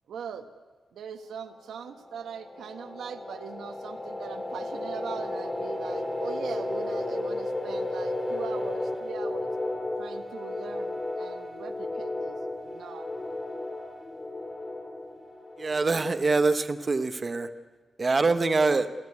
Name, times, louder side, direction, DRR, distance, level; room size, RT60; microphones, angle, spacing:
voice 1, 0.1-0.5 0.9-9.5 10.0-13.1, right 7 dB, 85° right, 8 dB, 1.3 m, -41 dB
sound 1, 1.9-16.5, left 2 dB, 20° left, 2.0 m, -34 dB
voice 2, 15.6-17.5 18.0-18.9, right 3 dB, 25° right, 9 dB, 0.8 m, -24 dB
28.5 x 14.5 x 9.6 m, 1.4 s
wide cardioid pair, 160°, 0 cm